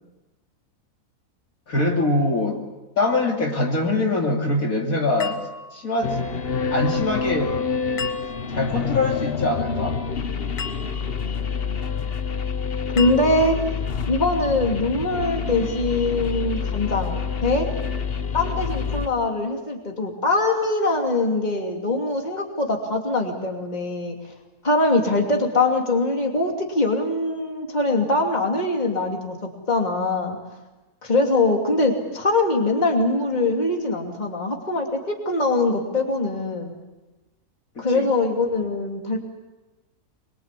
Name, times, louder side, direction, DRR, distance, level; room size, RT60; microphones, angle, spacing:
voice 1, 1.7-2.6 3.0-5.4 5.7-6.2 6.7-7.6 8.5-10.0 37.8-38.1, left 2 dB, 65° left, 0 dB, 3.5 m, -23 dB
sound 1, 5.2-6.1 8.0-8.7 10.6-11.3 13.0-13.8, left 5 dB, 90° left, 1.9 m, -36 dB
sound 2, 6.0-19.1, left 6 dB, 45° left, 1.2 m, -27 dB
voice 2, 12.9-13.6 14.1-17.7 18.3-24.2 24.6-29.4 29.7-30.4 31.0-36.7 37.8-39.2, left 2 dB, 30° left, 1 dB, 2.9 m, -22 dB
24.5 x 23.0 x 8.4 m, 1.1 s
omnidirectional pair, 1.6 m